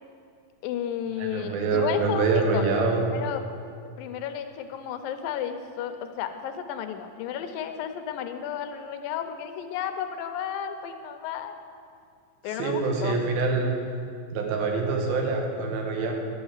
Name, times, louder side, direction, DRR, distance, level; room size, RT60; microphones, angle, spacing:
voice 1, 0.6-2.6 3.0-3.4 4.0-11.5 12.4-13.2, left 9 dB, 80° left, 7 dB, 2.4 m, -33 dB
voice 2, 1.2-3.0 12.6-13.8 14.3-16.1, right 4 dB, 80° right, 1 dB, 3.0 m, -25 dB
11.5 x 7.0 x 7.3 m, 2.3 s
omnidirectional pair, 4.2 m